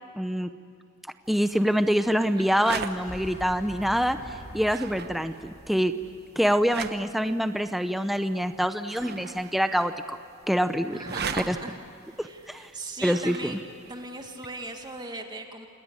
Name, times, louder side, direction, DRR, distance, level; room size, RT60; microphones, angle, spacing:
voice 1, 0.1-0.5 1.3-4.2 4.5-5.9 6.4-10.2 10.5-11.0 11.5-11.6 12.2-12.7 13.0-13.6, equal, ahead, 9 dB, 0.7 m, -25 dB
sound 1, 1.3-15.1, right 6 dB, 50° right, 1.1 m, -41 dB
voice 2, 2.4-2.9 10.8-11.8 12.1-13.6 13.9-15.7, right 2 dB, 20° right, 4 dB, 2.1 m, -39 dB
sound 2, 2.9-6.9, equal, 40° left, 5.6 m, -44 dB
27.5 x 19.0 x 9.7 m, 2.2 s
head